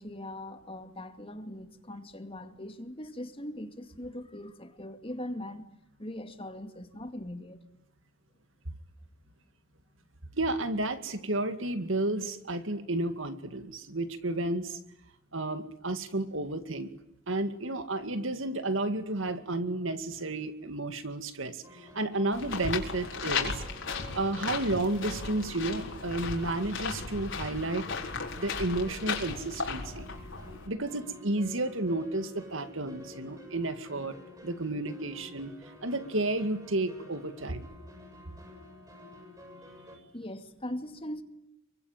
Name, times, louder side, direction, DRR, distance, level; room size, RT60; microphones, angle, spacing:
voice 1, 0.0-5.7 6.0-7.6 27.5-27.6 40.1-41.2, left 1 dB, 25° left, 2.2 m, -40 dB
voice 2, 10.3-14.8 15.3-16.9 17.3-23.6 24.1-27.8 28.4-30.1 30.7-37.7, right 2 dB, 65° right, 2.2 m, -32 dB
sound 1, 21.6-40.0, left 1 dB, 20° right, 6.9 m, -50 dB
sound 2, 22.3-30.7, left 4 dB, 65° left, 4.5 m, -36 dB
27.0 x 24.0 x 9.2 m
head